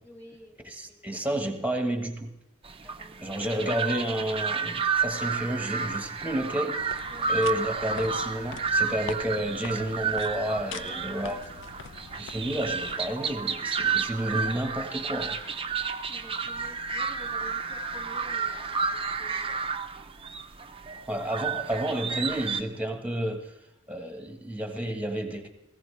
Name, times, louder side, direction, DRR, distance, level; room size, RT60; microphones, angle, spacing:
voice 1, 0.0-0.6 0.9-1.2 2.8-3.4 7.1-7.4 10.7-11.6 15.4-19.7 20.5-21.2, equal, 10° left, 1 dB, 2.0 m, -51 dB
voice 2, 0.6-2.4 3.2-11.4 12.2-15.4 21.1-23.5 23.9-25.5, right 1 dB, 5° right, 5 dB, 1.2 m, -31 dB
sound 1, 2.6-22.6, right 5 dB, 25° right, 0.6 m, -31 dB
sound 2, 6.8-13.1, left 6 dB, 55° left, 0.5 m, -44 dB
17.5 x 15.0 x 3.3 m, 0.85 s
head